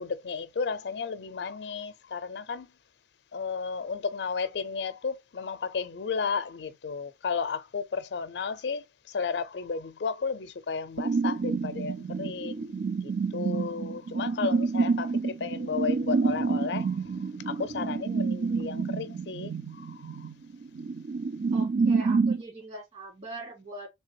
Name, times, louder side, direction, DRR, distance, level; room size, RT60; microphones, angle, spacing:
voice 1, 0.0-2.7 3.3-12.8 13.0-20.3, left 5 dB, 75° left, 0.5 m, -33 dB
sound 1, 11.0-22.4, right 4 dB, 60° right, 0.5 m, -28 dB
voice 2, 21.5-23.9, right 2 dB, 35° right, 2.1 m, -41 dB
3.3 x 3.3 x 2.8 m
head